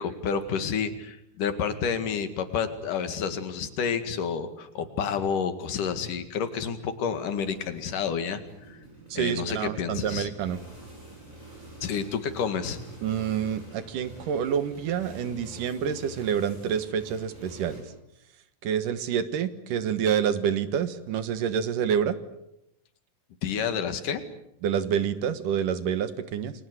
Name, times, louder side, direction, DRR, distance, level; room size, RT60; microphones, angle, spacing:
voice 1, 0.0-8.4 8.7-8.8 9.1-10.3 11.8-12.8 23.4-24.2, left 6 dB, 80° left, 9 dB, 3.6 m, -29 dB
sound 1, 7.1-17.8, right 1 dB, 20° right, 8.4 m, -46 dB
voice 2, 9.1-10.6 13.0-17.8 18.6-22.2 24.6-26.5, right 8 dB, 85° right, 12 dB, 3.1 m, -27 dB
29.5 x 22.5 x 8.0 m, 0.82 s
omnidirectional pair, 3.6 m